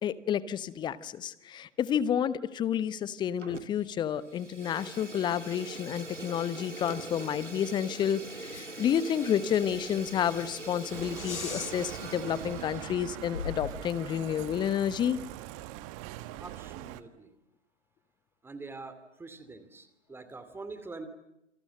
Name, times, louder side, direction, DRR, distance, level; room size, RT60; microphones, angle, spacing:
voice 1, 0.0-15.2, left 9 dB, 10° left, 18 dB, 1.0 m, -30 dB
Fire, 3.4-3.9 4.2-13.0, right 2 dB, 85° right, 2.6 m, -43 dB
sound 1, 8.5-8.9 9.2-9.3 9.6-11.7 12.4-12.5 12.8-14.1, left 6 dB, 70° left, 5.2 m, -41 dB
Bicycle, 10.9-17.0, right 15 dB, 30° right, 1.4 m, -42 dB
voice 2, 16.4-17.3 18.4-21.1, right 3 dB, 5° right, 10 dB, 2.5 m, -45 dB
28.5 x 27.0 x 7.8 m, 0.86 s
figure-of-eight pair, 115°, 35 cm